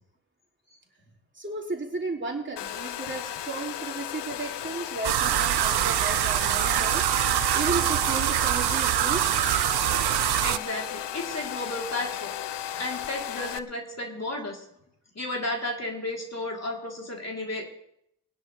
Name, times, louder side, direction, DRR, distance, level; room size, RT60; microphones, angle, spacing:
voice 1, 1.3-7.0 7.5-9.3, right 3 dB, 25° right, 0 dB, 3.3 m, -34 dB
Domestic sounds home sounds, 2.6-13.6, left 11 dB, 75° left, 0.7 m, -35 dB
sound 1, 5.0-10.6, right 14 dB, 65° right, 0.5 m, -24 dB
voice 2, 10.2-12.3 12.6-14.6 15.2-17.6, left 1 dB, 35° left, -1 dB, 3.9 m, -33 dB
20.5 x 10.5 x 3.5 m, 0.73 s
supercardioid pair, 45°, 42 cm